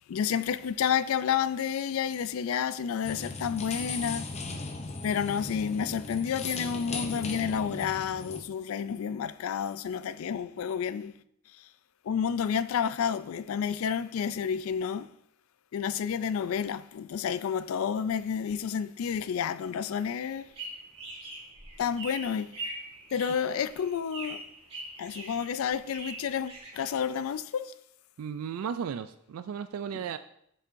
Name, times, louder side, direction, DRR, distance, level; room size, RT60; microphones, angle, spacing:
voice 1, 0.1-4.3 5.0-11.2 12.1-15.1 15.7-20.5 21.8-22.5 23.1-24.4 25.0-27.7 29.9-30.0, left 7 dB, 80° left, 0.3 m, -30 dB
sound 1, 3.0-8.4, left 3 dB, 30° left, 0.6 m, -37 dB
sound 2, 20.3-27.3, right 2 dB, 30° right, 1.8 m, -43 dB
voice 2, 28.2-30.2, right 7 dB, 90° right, 0.3 m, -35 dB
7.3 x 6.9 x 2.6 m
head